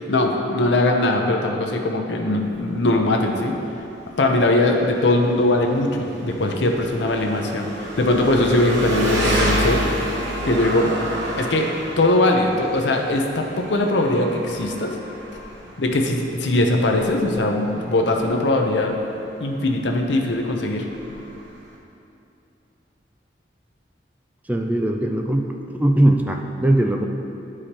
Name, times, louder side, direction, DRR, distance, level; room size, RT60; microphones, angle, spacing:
voice 1, 0.1-3.5 4.2-9.8 10.4-10.9 11.4-11.7 12.0-14.9 15.8-18.9 19.4-20.8, left 2 dB, 75° left, 2 dB, 0.7 m, -20 dB
Engine, 2.2-21.8, equal, 75° right, 1.0 m, -30 dB
voice 2, 24.5-27.1, right 1 dB, 10° right, 2 dB, 0.3 m, -20 dB
11.0 x 4.9 x 2.9 m, 2.7 s
head